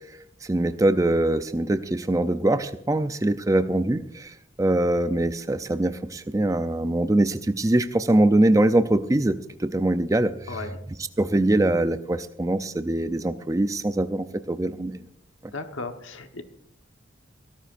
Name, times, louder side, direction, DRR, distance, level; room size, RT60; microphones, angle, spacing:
voice 1, 0.4-10.6 11.2-15.0, right 1 dB, 15° right, 10 dB, 0.4 m, -23 dB
voice 2, 10.5-10.8 15.5-16.4, left 3 dB, 85° left, 6 dB, 1.3 m, -35 dB
23.5 x 13.0 x 2.6 m, 0.73 s
head